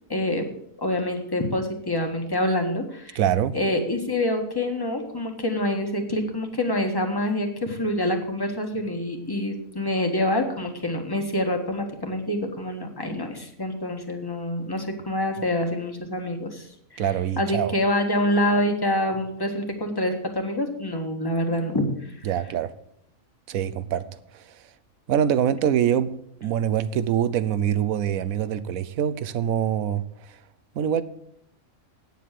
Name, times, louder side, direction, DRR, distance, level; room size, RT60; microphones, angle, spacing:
voice 1, 0.1-0.5 0.8-3.2 3.5-16.7 16.9-17.1 17.4-22.1, left 1 dB, 15° left, 1.5 m, -26 dB
voice 2, 3.1-3.6 17.0-17.7 22.2-22.7 23.5-24.0 24.3-24.4 25.1-26.1 26.4-30.0 30.8-31.0, right 9 dB, 80° right, 1.1 m, -24 dB
9.4 x 7.5 x 7.5 m
omnidirectional pair, 1.4 m